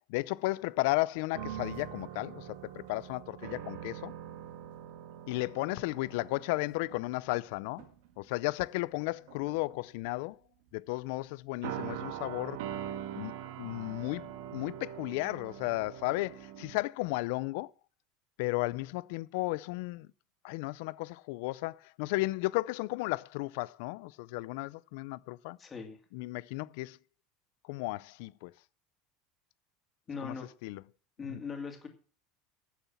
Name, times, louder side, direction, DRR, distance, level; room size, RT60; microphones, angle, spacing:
voice 1, 0.1-4.1 5.3-7.9 8.2-10.4 10.7-12.6 13.2-17.7 18.4-20.1 20.4-25.6 26.1-27.0 27.7-28.5 30.2-30.4 30.6-30.8 31.3-31.4, left 21 dB, 70° left, 0.5 m, -34 dB
sound 1, 1.3-7.4 7.8-8.1 9.0-9.8 11.6-16.8, right 10 dB, 75° right, 1.7 m, -43 dB
voice 2, 25.6-26.0 30.1-30.5 31.2-31.9, left 5 dB, 20° left, 2.6 m, -40 dB
11.5 x 7.2 x 7.2 m
supercardioid pair, 150°, 0 cm